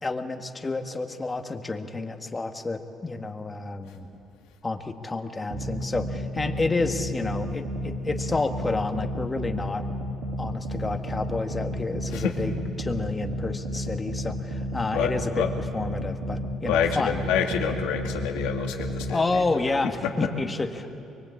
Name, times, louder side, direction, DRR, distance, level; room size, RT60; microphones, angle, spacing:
voice 1, 0.0-4.1 4.6-9.8 10.4-15.5 15.7-17.2 19.1-20.9, left 3 dB, 25° left, 5 dB, 1.8 m, -29 dB
sound 1, 5.5-19.1, equal, 60° right, 2.5 m, -32 dB
voice 2, 14.9-15.5 16.7-19.4 20.0-20.1, left 7 dB, 85° left, 2 dB, 2.5 m, -27 dB
24.0 x 23.0 x 8.6 m, 2.7 s
supercardioid pair, 85°, 0 cm